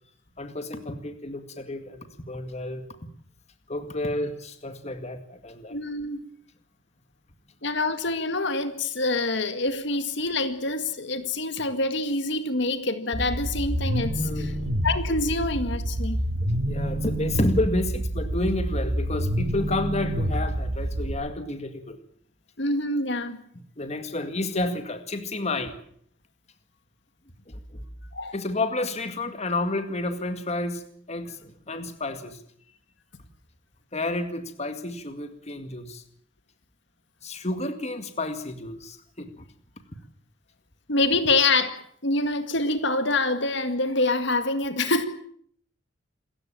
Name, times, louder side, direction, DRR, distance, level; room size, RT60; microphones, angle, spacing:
voice 1, 0.4-2.9 3.7-5.8 14.2-14.5 16.7-22.0 23.8-25.8 27.5-27.8 28.3-32.4 33.9-36.0 37.2-39.4, left 2 dB, 35° left, 8 dB, 2.1 m, -30 dB
voice 2, 5.7-6.3 7.6-14.5 14.8-16.2 22.6-23.4 28.1-28.4 40.9-45.1, left 2 dB, 60° left, 9 dB, 2.0 m, -26 dB
sound 1, 13.1-21.1, right 1 dB, 85° right, 5.9 m, -28 dB
27.5 x 15.0 x 8.8 m, 0.63 s
head